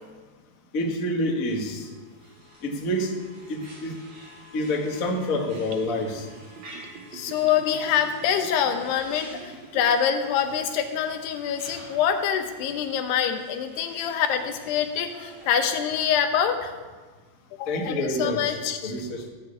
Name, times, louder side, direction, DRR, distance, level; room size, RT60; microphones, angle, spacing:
voice 1, 0.7-1.9 2.6-3.1 3.5-4.0 4.5-6.3 17.7-18.6 18.8-19.3, left 1 dB, 50° left, 0 dB, 0.9 m, -27 dB
sound 1, 1.4-16.0, right 1 dB, 55° right, 6.8 m, -49 dB
Gurgling / Bathtub (filling or washing), 4.8-10.0 10.3-10.4, right 5 dB, 75° right, 1.7 m, -44 dB
voice 2, 7.1-16.7 17.6-18.9, left 8 dB, 80° left, 6 dB, 3.1 m, -25 dB
15.0 x 6.7 x 8.4 m, 1.4 s
omnidirectional pair, 4.7 m